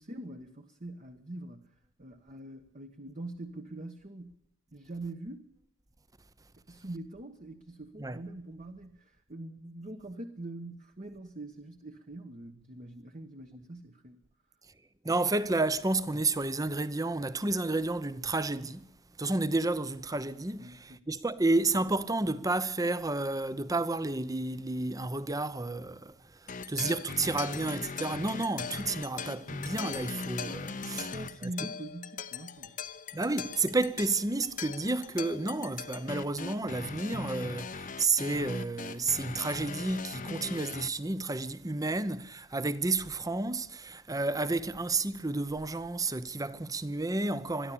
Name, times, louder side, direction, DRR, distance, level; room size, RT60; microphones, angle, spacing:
voice 1, 0.0-4.4 4.7-5.5 6.7-14.2 20.6-21.0 30.9-32.8, right 2 dB, 35° right, 1.3 m, -43 dB
voice 2, 15.0-18.8 19.2-26.2 26.4-31.1 31.4-31.5 33.1-47.7, right 2 dB, 15° right, 0.8 m, -31 dB
sound 1, 26.5-40.9, left 5 dB, 40° left, 0.8 m, -40 dB
22.0 x 14.0 x 8.6 m
head